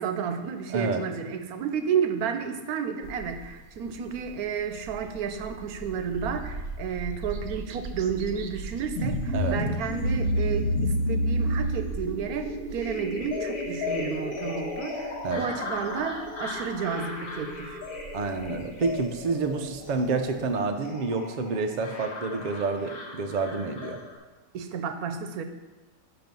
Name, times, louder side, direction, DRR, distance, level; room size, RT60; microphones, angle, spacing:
voice 1, 0.0-17.8 24.5-25.4, right 7 dB, 85° right, 8 dB, 1.2 m, -31 dB
voice 2, 0.7-1.0 9.3-9.6 15.2-15.5 18.1-24.0, right 4 dB, 50° right, 5 dB, 0.5 m, -28 dB
sound 1, 3.0-20.6, right 3 dB, 70° right, 0.9 m, -42 dB
sound 2, 9.0-24.1, left 1 dB, 85° left, 1.9 m, -32 dB
6.0 x 5.9 x 5.3 m, 1.2 s
omnidirectional pair, 1.5 m